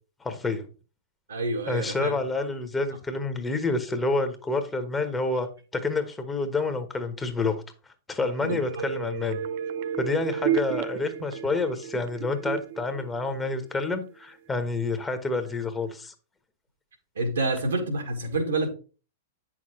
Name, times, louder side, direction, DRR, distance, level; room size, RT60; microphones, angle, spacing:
voice 1, 0.2-0.6 1.7-7.6 8.1-9.4 10.0-16.1, left 3 dB, 10° left, 1.2 m, -28 dB
voice 2, 1.3-2.2 8.4-8.9 17.2-18.7, right 2 dB, 70° right, 1.9 m, -28 dB
sound 1, 8.3-14.0 14.3-14.4, right 9 dB, 50° right, 0.5 m, -32 dB
9.2 x 6.1 x 3.1 m
figure-of-eight pair, 100°, 0 cm